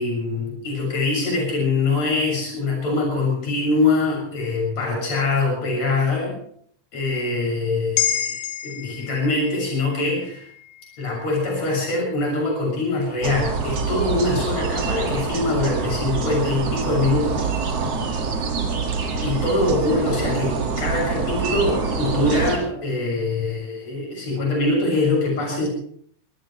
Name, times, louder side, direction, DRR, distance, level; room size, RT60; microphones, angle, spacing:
voice 1, 0.0-6.4 6.9-10.5 11.0-17.5 19.2-25.7, left 2 dB, 35° left, -1 dB, 7.8 m, -23 dB
sound 1, 8.0-12.5 12.9-13.0, left 10 dB, 70° left, 2.9 m, -30 dB
sound 2, 13.2-22.6, right 4 dB, 45° right, 2.3 m, -25 dB
23.0 x 18.0 x 3.3 m, 0.62 s
omnidirectional pair, 5.5 m